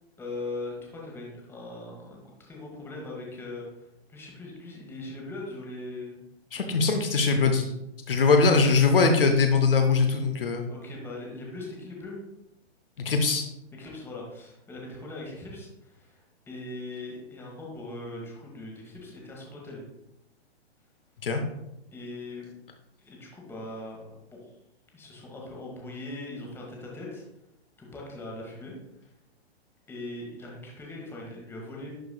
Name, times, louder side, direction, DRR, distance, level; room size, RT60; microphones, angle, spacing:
voice 1, 0.2-6.2 6.5-7.0 10.7-12.2 13.8-19.9 21.9-22.5 23.0-24.5 24.9-27.3 27.8-29.1 29.9-32.0, left 2 dB, 5° left, -2 dB, 1.2 m, -40 dB
voice 2, 6.5-7.7 8.1-10.7 13.0-13.4 21.2-21.4, left 4 dB, 55° left, 4 dB, 0.8 m, -21 dB
11.0 x 4.6 x 2.2 m, 0.86 s
figure-of-eight pair, 115°, 33 cm